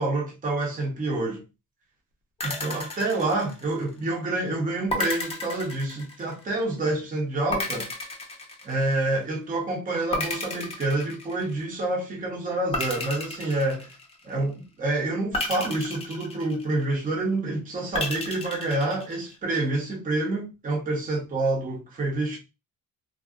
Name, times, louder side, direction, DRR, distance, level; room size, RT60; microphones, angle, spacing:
voice 1, 0.0-1.4 2.4-7.9 8.6-13.9 14.2-22.4, right 2 dB, 25° right, 0.6 m, -28 dB
sound 1, 2.4-4.0 4.9-6.5 7.5-9.2 10.1-11.7 12.7-14.4 15.3-17.0 17.9-19.4, left 2 dB, 20° left, 0.6 m, -33 dB
3.5 x 2.1 x 2.4 m
wide cardioid pair, 180°, 33 cm